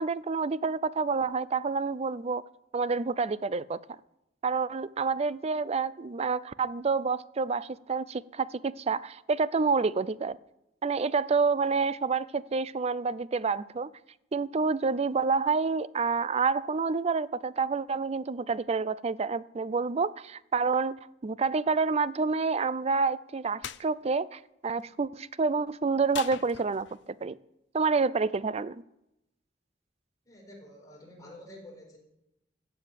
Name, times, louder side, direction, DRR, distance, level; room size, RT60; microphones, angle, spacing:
voice 1, 0.0-2.4 2.7-3.8 4.4-10.4 10.8-13.9 14.3-27.4 27.7-28.8, right 4 dB, 35° right, 18 dB, 0.4 m, -28 dB
sound 1, 23.6-23.9 26.1-27.1, left 10 dB, 70° left, 0.5 m, -40 dB
voice 2, 30.2-32.0, left 1 dB, 20° left, -1 dB, 4.4 m, -49 dB
15.5 x 7.0 x 7.5 m, 0.87 s
head